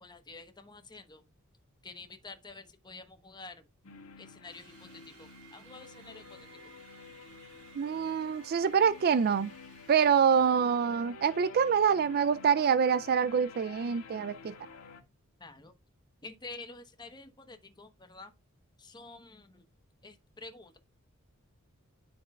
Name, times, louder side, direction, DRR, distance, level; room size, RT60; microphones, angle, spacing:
voice 1, 0.0-1.2 1.8-3.6 4.2-6.5 15.4-15.8 16.2-18.3 18.8-19.7 20.0-20.8, left 3 dB, 20° left, 1.1 m, -49 dB
sound 1, 3.8-15.0, left 5 dB, 80° left, 1.8 m, -50 dB
sound 2, 4.5-10.7, right 7 dB, 65° right, 3.1 m, -58 dB
voice 2, 7.8-9.5 9.9-14.5, right 7 dB, 45° right, 0.4 m, -26 dB
10.5 x 6.0 x 2.3 m
head